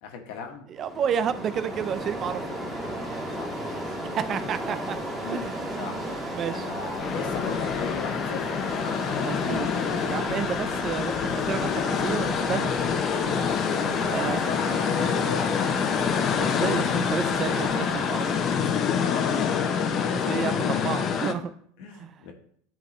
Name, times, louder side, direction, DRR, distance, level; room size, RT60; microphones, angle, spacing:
voice 1, 0.0-0.7 3.3-4.2 5.2-6.0 6.5-10.0 10.5-10.8 13.9-15.8 19.0-20.3 20.6-20.8 21.8-22.3, left 6 dB, 70° left, 3 dB, 1.3 m, -38 dB
voice 2, 0.7-2.4 4.2-5.0 5.3-5.9 6.3-6.7 9.3-9.7 10.1-12.8 14.1-14.4 16.4-18.2 20.1-21.5 21.9-22.2, right 8 dB, 35° right, 12 dB, 0.4 m, -31 dB
sound 1, 0.8-18.6, right 1 dB, 5° right, 2.0 m, -35 dB
sound 2, 7.0-21.3, left 7 dB, 40° left, 0.7 m, -26 dB
10.5 x 3.6 x 3.2 m, 0.65 s
supercardioid pair, 115°, 0 cm